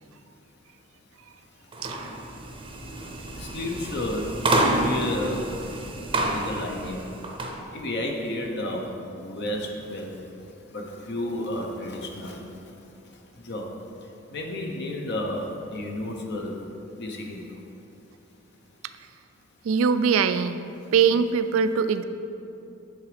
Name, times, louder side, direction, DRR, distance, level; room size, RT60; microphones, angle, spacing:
sound 1, 1.7-7.6, right 2 dB, 25° right, 0.6 m, -28 dB
voice 1, 3.3-4.3 4.6-5.4 6.1-7.0 7.7-8.8 9.2-10.1 10.7-12.4 13.4-13.7 14.3-15.4 15.7-16.5 17.0-17.4, left 1 dB, 55° left, 1 dB, 0.8 m, -31 dB
voice 2, 19.6-20.6 20.9-22.0, right 6 dB, 70° right, 11 dB, 0.3 m, -22 dB
9.1 x 3.9 x 4.9 m, 2.7 s
head